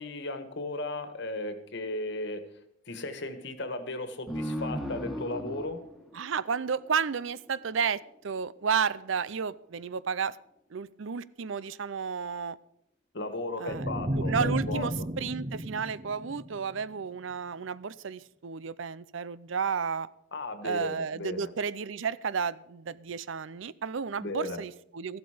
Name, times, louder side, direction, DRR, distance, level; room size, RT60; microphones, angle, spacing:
voice 1, 0.0-2.4 2.9-5.8 13.1-15.1 20.3-21.5 24.2-24.6, left 2 dB, 60° left, 10 dB, 1.6 m, -36 dB
sound 1, 4.3-7.4, equal, ahead, 1.6 m, -36 dB
voice 2, 6.1-10.4 10.7-12.6 13.6-20.1 20.6-25.2, right 6 dB, 70° right, 18 dB, 0.5 m, -32 dB
sound 2, 13.7-16.9, right 1 dB, 30° right, 0.8 m, -33 dB
14.5 x 12.0 x 5.0 m, 0.75 s
head